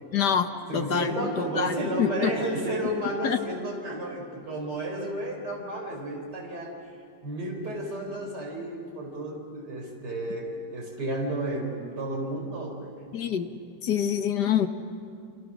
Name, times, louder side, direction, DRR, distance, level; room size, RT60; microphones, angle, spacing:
voice 1, 0.1-1.2 1.5-2.3 3.2-3.4 13.1-13.5 13.8-14.7, left 8 dB, 60° left, 8 dB, 1.5 m, -26 dB
voice 2, 0.7-6.7 7.2-13.1, right 1 dB, 55° right, 0 dB, 5.0 m, -32 dB
29.0 x 27.0 x 6.3 m, 2.4 s
omnidirectional pair, 2.2 m